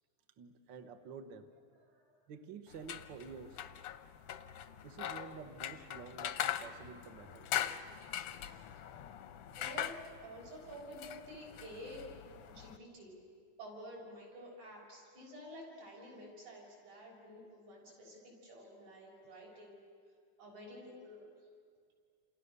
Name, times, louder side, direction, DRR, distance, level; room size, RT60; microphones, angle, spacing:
voice 1, 0.4-1.5 2.3-3.6 4.8-7.5 8.5-8.7, right 6 dB, 55° right, 7 dB, 1.4 m, -50 dB
sound 1, 2.7-12.8, left 11 dB, 70° left, 1.5 m, -42 dB
voice 2, 9.6-12.1 12.5-13.1 13.6-19.8 20.4-21.3, equal, 75° right, -2 dB, 8.1 m, -50 dB
29.0 x 28.0 x 6.7 m, 2.1 s
omnidirectional pair, 3.4 m